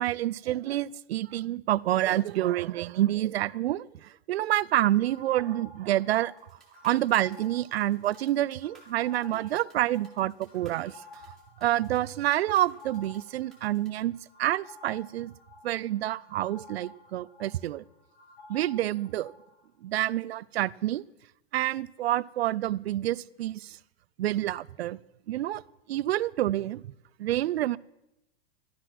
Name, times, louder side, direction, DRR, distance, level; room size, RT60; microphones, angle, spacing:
voice 1, 0.0-6.3 6.8-11.0 11.6-15.3 15.6-17.8 18.5-19.3 19.8-21.0 21.5-23.8 24.2-25.0 25.3-25.6 25.9-26.8 27.2-27.8, right 14 dB, 80° right, 0.5 m, -28 dB
sound 1, 4.9-19.7, left 3 dB, 75° left, 7.0 m, -53 dB
sound 2, 6.4-13.9, right 3 dB, ahead, 2.2 m, -60 dB
14.0 x 12.0 x 6.0 m
supercardioid pair, 180°, 31 cm